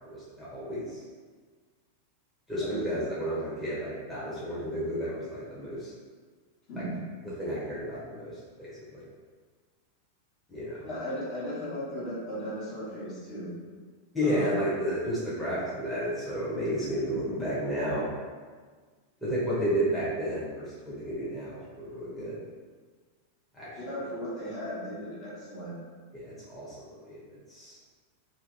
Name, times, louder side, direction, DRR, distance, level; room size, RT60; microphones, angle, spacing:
voice 1, 0.1-1.0 2.5-5.9 6.8-6.9 7.4-9.0 10.5-10.9 14.1-18.1 19.2-22.4 23.5-23.7 26.1-27.2 27.5-27.8, equal, 5° left, -11 dB, 1.0 m, -32 dB
voice 2, 2.5-2.9 6.7-7.1 10.8-13.5 14.2-14.6 23.8-25.8, equal, 35° left, -8 dB, 1.3 m, -36 dB
2.8 x 2.8 x 3.8 m, 1.5 s
figure-of-eight pair, 90°, 0 cm